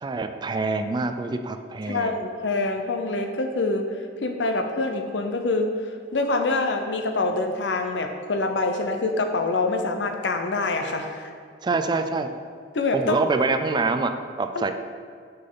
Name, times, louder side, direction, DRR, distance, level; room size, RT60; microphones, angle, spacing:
voice 1, 0.0-2.2 11.6-12.3 12.9-14.7, right 3 dB, 25° right, 8 dB, 0.3 m, -25 dB
voice 2, 1.9-5.7 6.1-11.3 12.7-13.2 14.5-14.7, left 3 dB, 90° left, 5 dB, 0.7 m, -25 dB
6.3 x 5.9 x 3.9 m, 2.1 s
head